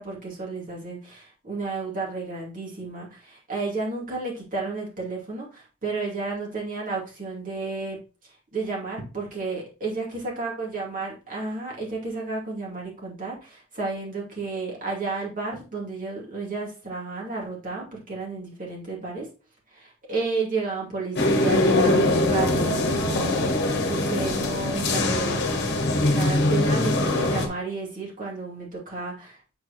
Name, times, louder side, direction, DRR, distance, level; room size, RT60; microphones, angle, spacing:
voice 1, 0.0-19.3 19.7-25.7 26.0-29.4, right 3 dB, 40° right, -4 dB, 2.6 m, -32 dB
sound 1, 21.2-27.5, left 2 dB, 50° left, 1.3 m, -22 dB
7.6 x 4.6 x 3.0 m, 0.33 s
head